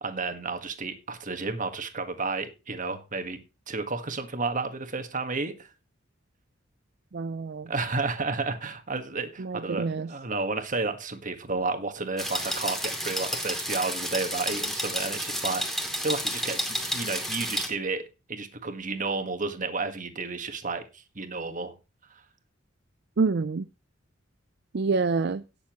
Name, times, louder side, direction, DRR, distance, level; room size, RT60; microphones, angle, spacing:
voice 1, 0.0-3.4 3.7-5.7 7.7-21.7 22.1-22.2, right 3 dB, 45° right, 1.6 m, -32 dB
voice 2, 7.1-7.7 9.4-10.1 23.2-23.6 24.7-25.4, right 4 dB, 60° right, 0.5 m, -27 dB
sound 1, 12.2-17.7, equal, ahead, 2.4 m, -31 dB
17.5 x 7.0 x 3.1 m
head